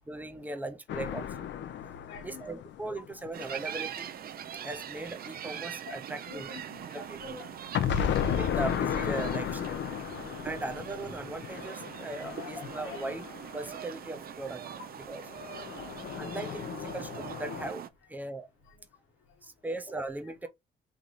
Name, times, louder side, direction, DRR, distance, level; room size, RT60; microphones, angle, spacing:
voice 1, 0.1-1.3 2.2-4.1 4.6-6.5 6.9-7.4 8.3-9.8 10.4-13.3 13.5-14.6 15.1-15.2 16.2-17.8 18.1-18.5 19.4-20.5, right 2 dB, 10° right, 0.7 m, -38 dB
sound 1, 0.9-3.7 7.7-14.0 15.3-17.7, left 9 dB, 65° left, 0.6 m, -34 dB
voice 2, 2.1-2.5 5.8-6.0 6.3-8.9 10.2-10.6 12.2-13.2 14.7-14.8 15.2-15.3 15.6-16.4 16.9-17.0 18.7-18.9, left 5 dB, 85° left, 1.1 m, -48 dB
sound 2, 3.3-17.9, right 9 dB, 50° right, 0.5 m, -42 dB
3.2 x 2.8 x 4.0 m
cardioid pair, 90°, 20 cm